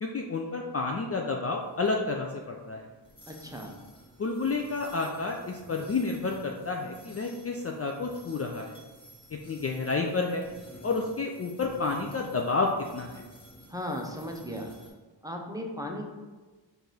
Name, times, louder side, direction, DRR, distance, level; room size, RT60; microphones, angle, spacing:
voice 1, 0.0-2.9 4.2-8.8 9.3-10.4 10.8-13.2, left 3 dB, 35° left, 1 dB, 0.4 m, -30 dB
sound 1, 1.5-14.9, equal, 10° left, 1.5 m, -52 dB
voice 2, 3.3-3.7 13.7-14.7 15.2-16.0, equal, 10° right, 1 dB, 0.7 m, -36 dB
4.6 x 2.7 x 4.0 m, 1.3 s
cardioid pair, 65°, 46 cm